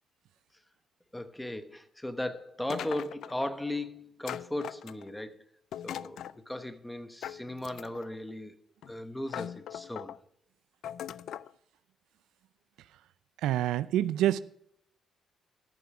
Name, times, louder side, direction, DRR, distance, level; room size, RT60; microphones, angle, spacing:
voice 1, 1.1-5.4 5.8-8.6 8.9-10.1, left 1 dB, 5° left, 1.0 m, -37 dB
sound 1, 2.7-3.5 4.3-5.2 5.7-6.4 7.2-8.1 8.8-8.9 9.3-10.2 10.8-11.5, left 10 dB, 75° left, 0.3 m, -40 dB
voice 2, 13.4-14.4, right 12 dB, 90° right, 0.4 m, -26 dB
13.5 x 6.9 x 4.8 m
cardioid pair, 90°, 0 cm